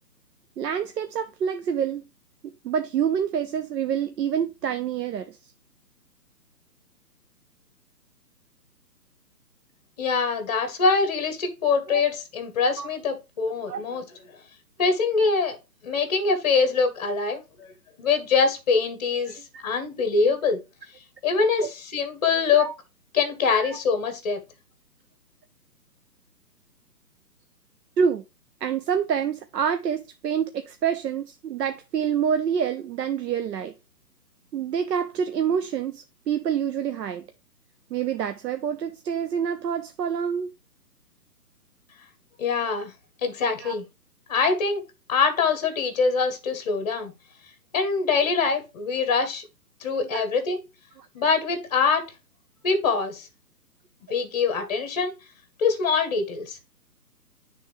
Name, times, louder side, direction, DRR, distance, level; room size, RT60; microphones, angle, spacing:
voice 1, 0.6-2.0 2.4-5.4 11.9-12.0 12.8-12.9 13.7-13.8 19.3-19.4 20.2-20.3 21.6-21.7 22.5-22.7 23.5-23.8 28.0-28.2 28.6-33.7 34.5-37.2 37.9-40.5 43.6-43.7 50.0-50.2, right 7 dB, 75° right, 0.6 m, -27 dB
voice 2, 10.0-14.4 14.8-15.6 15.8-17.7 18.0-20.6 21.2-22.7 23.1-24.4 42.4-42.9 43.2-43.9 44.3-44.8 45.1-47.1 47.7-49.4 49.8-50.6 51.1-52.0 52.6-53.3 54.1-55.1 55.6-56.6, left 5 dB, 25° left, 0.9 m, -24 dB
9.4 x 3.5 x 3.1 m
hypercardioid pair, 150°, 50 cm